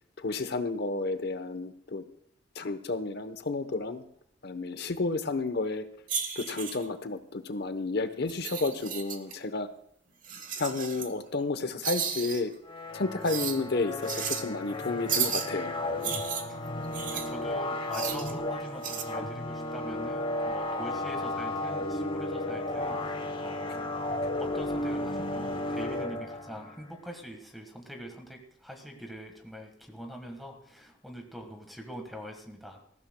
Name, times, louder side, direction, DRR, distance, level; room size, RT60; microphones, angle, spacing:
voice 1, 0.2-2.0 2.6-4.0 4.4-5.8 6.4-9.7 10.6-12.5 12.9-15.7, left 3 dB, 60° left, 10 dB, 0.9 m, -31 dB
sound 1, 6.1-6.9 8.3-9.3 10.2-11.1 11.8-12.4 13.2-13.6 14.0-14.4 15.1-15.5 16.0-17.3 17.9-18.3 18.8-19.0, right 7 dB, 45° right, 1.2 m, -33 dB
sound 2, 12.7-26.8, left 1 dB, 30° left, 1.0 m, -34 dB
voice 2, 17.1-23.9 24.4-32.8, equal, ahead, 3 dB, 1.5 m, -44 dB
19.5 x 15.0 x 2.2 m, 0.70 s
head